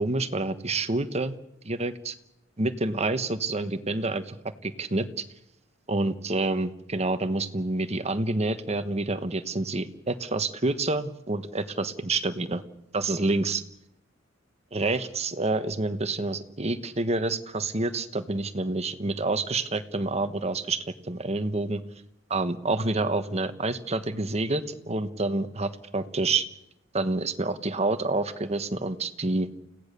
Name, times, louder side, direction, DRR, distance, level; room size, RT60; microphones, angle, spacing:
voice 1, 0.0-1.3 1.6-2.1 2.6-4.4 4.6-5.0 5.9-12.6 12.9-13.6 14.7-21.8 22.3-26.4 26.9-29.5, right 2 dB, 30° right, 10 dB, 1.3 m, -28 dB
29.5 x 17.0 x 6.8 m, 0.84 s
head